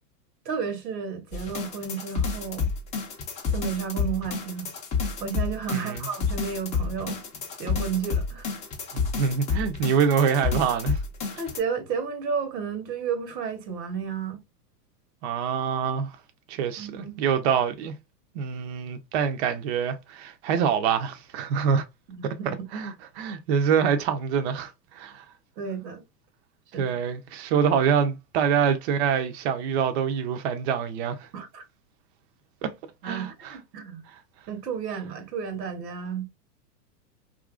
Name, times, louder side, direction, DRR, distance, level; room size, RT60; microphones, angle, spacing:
voice 1, 0.5-2.7 3.5-4.7 5.0-7.2 7.6-8.5 11.4-14.4 16.8-17.2 22.1-22.3 25.6-26.0 26.7-26.9 31.3-31.6 33.0-34.1 34.5-36.3, right 6 dB, 80° right, 1.0 m, -32 dB
sound 1, 1.3-11.6, left 5 dB, 15° left, 0.4 m, -30 dB
voice 2, 5.7-6.1 8.9-11.0 15.2-16.2 16.5-17.9 18.3-21.8 22.2-22.3 22.7-25.3 26.8-31.3 32.6-32.7 33.0-33.6 34.1-34.2, right 7 dB, 45° right, 0.4 m, -25 dB
2.8 x 2.5 x 2.3 m
hypercardioid pair, 110°, 49 cm